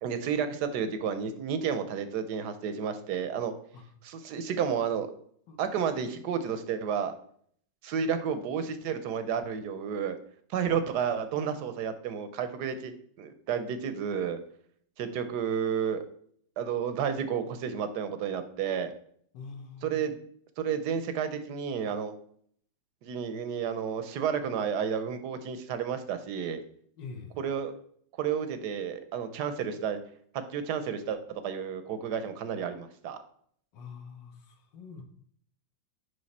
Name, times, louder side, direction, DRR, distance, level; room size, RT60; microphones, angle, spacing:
voice 1, 0.0-3.5 4.0-5.1 5.6-7.1 7.8-10.2 10.5-12.9 13.2-14.4 15.0-16.0 16.6-18.9 19.8-20.2 20.6-22.1 23.0-26.6 27.4-27.7 28.2-30.0 30.5-33.2, right 7 dB, 65° right, 10 dB, 1.2 m, -31 dB
voice 2, 19.3-20.0 27.0-27.4 33.7-35.0, left 5 dB, 70° left, 4 dB, 1.7 m, -45 dB
6.6 x 5.3 x 4.1 m, 0.62 s
omnidirectional pair, 2.1 m